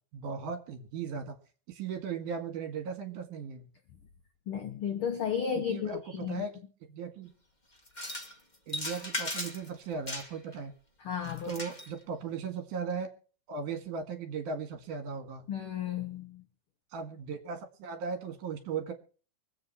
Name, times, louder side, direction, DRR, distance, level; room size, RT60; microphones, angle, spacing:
voice 1, 0.1-1.4 1.7-3.7 5.6-6.5 6.9-7.3 8.7-10.7 11.5-13.1 13.5-15.5 16.9-18.9, right 5 dB, 70° right, 6 dB, 3.3 m, -37 dB
voice 2, 4.5-6.4 11.0-11.6 15.5-16.4, left 8 dB, 80° left, 6 dB, 1.2 m, -33 dB
sound 1, 7.9-8.3 8.7-9.7 10.1-10.5 11.2-11.9, left 1 dB, 35° left, 0.7 m, -37 dB
23.5 x 8.0 x 4.2 m, 0.40 s
omnidirectional pair, 4.0 m